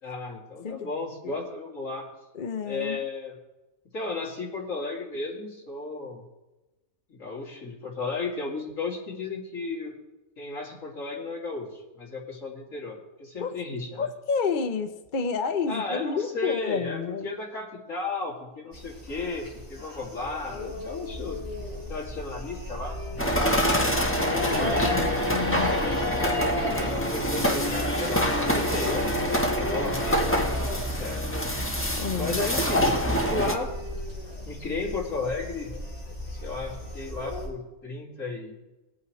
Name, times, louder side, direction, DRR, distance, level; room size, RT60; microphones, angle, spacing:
voice 1, 0.0-2.1 2.6-3.4 3.9-6.3 7.1-10.0 10.4-14.1 15.7-21.4 21.9-23.5 24.5-25.2 25.6-27.8 28.1-30.3 30.6-31.2 32.1-33.7 34.5-35.7 36.4-38.5, left 3 dB, 60° left, -3 dB, 3.1 m, -34 dB
voice 2, 2.3-3.0 13.4-13.6 14.0-17.3 24.2-25.0 25.3-25.8 32.0-32.4, left 5 dB, 45° left, 6 dB, 0.7 m, -30 dB
sound 1, 18.7-37.5, left 1 dB, 25° left, 4.7 m, -35 dB
sound 2, 23.2-33.6, equal, 10° left, 1.1 m, -26 dB
20.0 x 8.4 x 3.2 m, 1.1 s
omnidirectional pair, 1.5 m